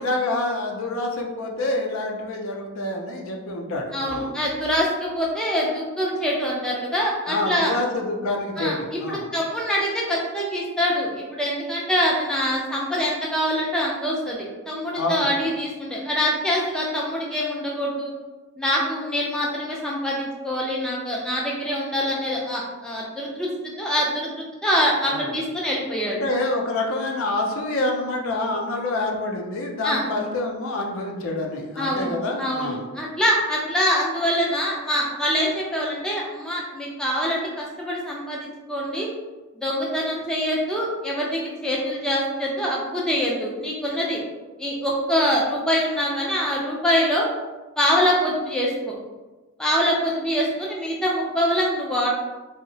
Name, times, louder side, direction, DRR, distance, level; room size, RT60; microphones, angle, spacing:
voice 1, 0.0-4.3 7.3-9.3 15.0-15.3 25.1-25.4 26.1-32.9, left 2 dB, 70° left, 1 dB, 0.4 m, -27 dB
voice 2, 3.9-7.7 8.6-18.1 18.6-26.2 29.8-30.0 31.8-32.1 32.4-39.1 39.6-44.2 44.6-47.3 47.8-48.9 49.6-52.1, equal, 5° left, -4 dB, 0.3 m, -24 dB
2.7 x 2.0 x 2.6 m, 1.2 s
head